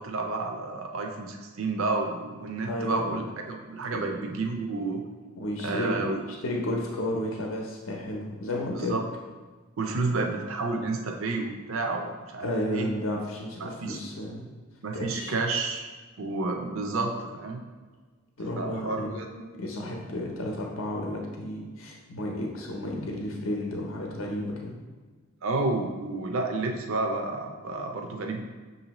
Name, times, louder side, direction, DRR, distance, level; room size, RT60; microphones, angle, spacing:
voice 1, 0.0-3.2 3.5-5.0 5.6-6.2 8.8-9.0 9.8-12.9 13.6-14.0 14.8-15.9 16.2-17.6 18.5-19.3 25.4-28.4, right 3 dB, 70° right, 3 dB, 0.5 m, -30 dB
voice 2, 2.7-3.2 3.9-4.2 5.4-6.1 6.4-9.0 12.4-14.5 14.9-15.3 18.4-19.1 19.6-24.7, left 1 dB, 70° left, -1 dB, 0.6 m, -32 dB
6.0 x 2.7 x 2.9 m, 1.4 s
head